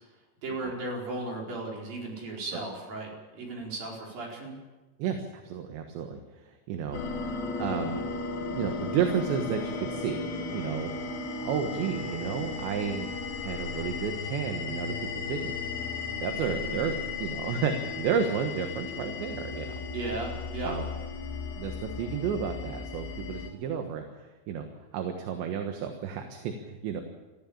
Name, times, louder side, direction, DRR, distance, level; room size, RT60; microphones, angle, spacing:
voice 1, 0.4-4.6 16.7-16.8 19.9-20.8, right 2 dB, 45° right, -1 dB, 6.1 m, -36 dB
voice 2, 5.0-8.1 8.5-13.1 13.4-15.6 16.2-19.8 20.6-20.8 21.6-27.0, right 7 dB, 70° right, 5 dB, 3.4 m, -32 dB
sound 1, 6.9-23.5, left 4 dB, 85° left, 4.9 m, -35 dB
22.5 x 15.0 x 8.7 m, 1.2 s
omnidirectional pair, 5.8 m